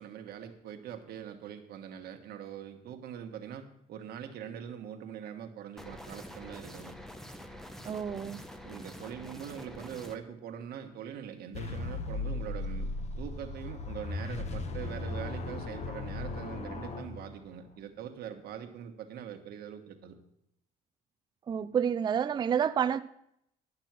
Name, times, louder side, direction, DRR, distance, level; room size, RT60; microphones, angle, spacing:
voice 1, 0.0-6.9 8.6-20.2, right 9 dB, 70° right, 1.3 m, -43 dB
sound 1, 5.8-10.2, equal, ahead, 0.8 m, -46 dB
voice 2, 7.8-8.4 21.5-23.0, right 8 dB, 25° right, 0.3 m, -29 dB
sound 2, 11.5-17.7, left 3 dB, 40° left, 1.0 m, -37 dB
10.5 x 6.1 x 6.0 m
cardioid pair, 110°, 17 cm